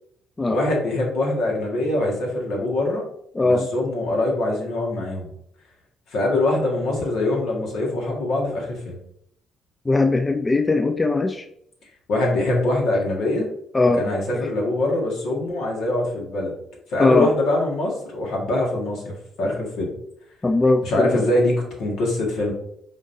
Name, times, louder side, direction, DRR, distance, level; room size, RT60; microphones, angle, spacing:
voice 1, 0.5-3.0 3.4-5.3 6.1-9.0 12.1-13.5 14.0-16.5 16.9-19.9 20.8-22.5, left 2 dB, 75° left, -1 dB, 1.7 m, -23 dB
voice 2, 3.4-3.7 9.9-11.4 13.7-14.0 17.0-17.3 20.4-21.2, left 2 dB, 25° left, 5 dB, 0.4 m, -19 dB
5.1 x 3.8 x 2.7 m, 0.72 s
supercardioid pair, 70°, 0 cm